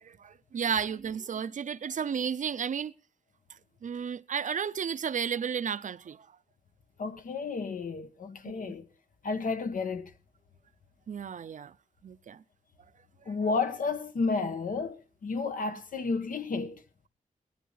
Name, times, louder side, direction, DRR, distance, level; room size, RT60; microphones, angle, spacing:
voice 1, 0.0-2.9 3.5-6.3 8.4-8.7 11.1-11.7 12.0-12.4, right 7 dB, 65° right, 0.6 m, -33 dB
voice 2, 7.0-8.9 9.2-10.1 13.2-16.8, left 4 dB, 80° left, 1.3 m, -32 dB
18.0 x 12.0 x 4.0 m
wide cardioid pair, 135°, 14 cm